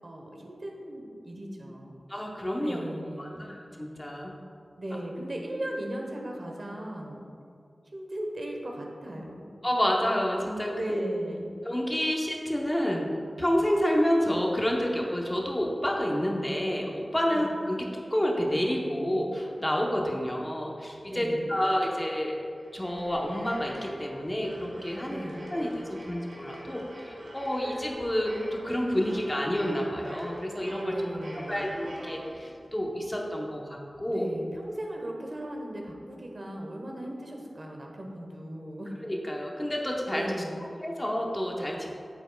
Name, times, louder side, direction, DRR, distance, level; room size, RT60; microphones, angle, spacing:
voice 1, 0.0-2.0 2.6-3.5 4.8-7.2 7.9-9.5 10.7-11.5 17.3-17.4 21.1-21.6 25.1-25.4 30.8-31.8 34.1-39.0 40.1-40.6, right 1 dB, 55° right, 0 dB, 1.1 m, -37 dB
voice 2, 2.1-2.8 3.2-4.3 4.9-5.0 9.6-11.0 11.6-22.4 22.7-25.2 25.5-30.9 31.5-34.3 39.0-40.3 40.8-41.9, equal, 20° left, -1 dB, 1.0 m, -29 dB
sound 1, 22.4-32.8, equal, 75° right, 1.4 m, -44 dB
8.9 x 7.8 x 2.3 m, 2.4 s
wide cardioid pair, 65°, 0 cm